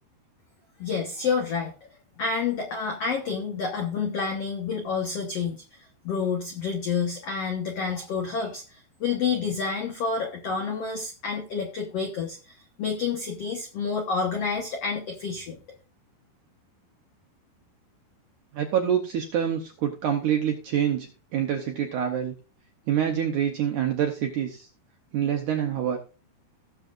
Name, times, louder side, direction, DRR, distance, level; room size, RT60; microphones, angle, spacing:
voice 1, 0.8-1.9 2.2-5.6 6.0-15.6, left 5 dB, 80° left, 3 dB, 1.4 m, -29 dB
voice 2, 18.5-22.3 22.9-24.7 25.1-26.0, right 9 dB, 75° right, 4 dB, 1.8 m, -26 dB
17.5 x 7.0 x 2.5 m, 0.34 s
omnidirectional pair, 4.8 m